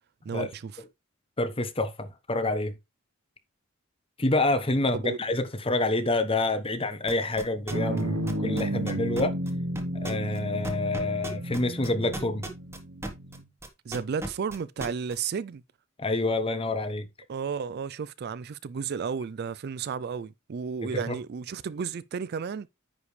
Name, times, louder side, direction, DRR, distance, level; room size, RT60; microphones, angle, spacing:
voice 1, 0.3-0.8 4.9-5.2 13.8-15.6 17.3-22.7, right 6 dB, 50° right, 0.4 m, -33 dB
voice 2, 1.4-2.7 4.2-9.3 9.9-12.5 16.0-17.1 20.8-21.2, left 2 dB, 30° left, 1.0 m, -27 dB
sound 1, 7.1-8.0 8.3-13.4 13.6-15.2, right 1 dB, 15° right, 1.2 m, -36 dB
sound 2, 7.7-13.5, right 1 dB, 70° right, 1.1 m, -32 dB
9.7 x 5.2 x 3.2 m
head